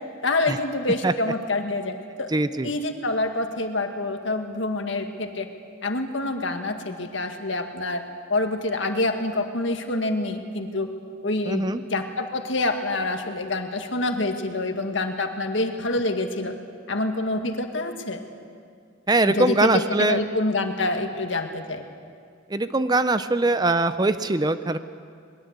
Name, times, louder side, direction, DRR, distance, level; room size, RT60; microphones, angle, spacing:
voice 1, 0.2-2.3 2.6-5.5 5.8-8.0 8.3-10.9 11.2-16.5 16.9-18.2 19.3-21.8, left 2 dB, 70° left, 5 dB, 1.9 m, -26 dB
voice 2, 2.3-2.7 11.5-11.8 19.1-20.2 22.5-24.8, right 2 dB, 20° right, 12 dB, 0.6 m, -22 dB
21.5 x 21.5 x 8.2 m, 2.2 s
head